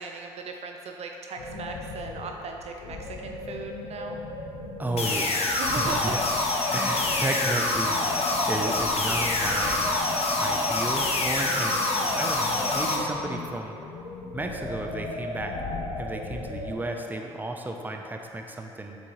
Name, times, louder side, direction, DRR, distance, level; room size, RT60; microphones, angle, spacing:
voice 1, 0.0-4.2 5.6-6.1 7.0-7.2 11.8-12.2, right 4 dB, 50° right, 3 dB, 0.5 m, -38 dB
sound 1, 1.4-16.7, left 2 dB, 85° left, 0.7 m, -37 dB
voice 2, 4.8-6.2 6.7-10.0 10.4-13.8 14.3-15.6 16.0-19.0, right 2 dB, 15° right, 3 dB, 0.7 m, -33 dB
sound 2, 5.0-13.0, left 2 dB, 45° left, 0.9 m, -26 dB
7.1 x 4.5 x 3.1 m, 2.7 s
hypercardioid pair, 55°, 14 cm